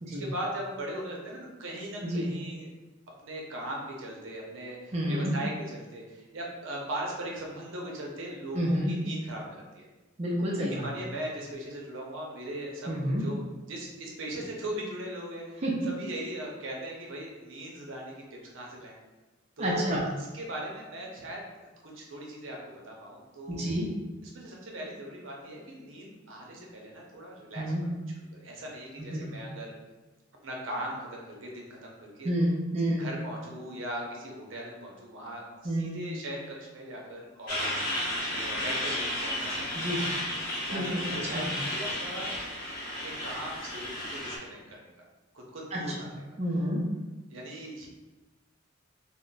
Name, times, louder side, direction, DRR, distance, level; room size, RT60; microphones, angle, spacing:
voice 1, 0.1-2.7 3.2-9.9 10.6-13.4 13.7-18.9 19.6-23.7 24.2-27.9 28.3-29.7 30.4-32.3 33.0-40.1 40.7-42.4 43.0-44.9 45.3-46.1 47.3-47.9, right 1 dB, 80° right, -2 dB, 0.6 m, -39 dB
voice 2, 4.9-5.3 8.5-8.9 10.2-10.9 12.9-13.2 15.6-15.7 19.6-20.1 23.5-23.9 27.6-27.9 29.0-29.4 32.2-33.0 35.6-36.0 39.7-40.0 40.7-41.0 41.3-41.5 45.7-46.1 46.4-46.8, equal, 35° right, -4 dB, 0.5 m, -29 dB
Truck, 37.5-44.4, left 1 dB, 50° left, 0.8 m, -33 dB
2.2 x 2.1 x 3.8 m, 1.1 s
head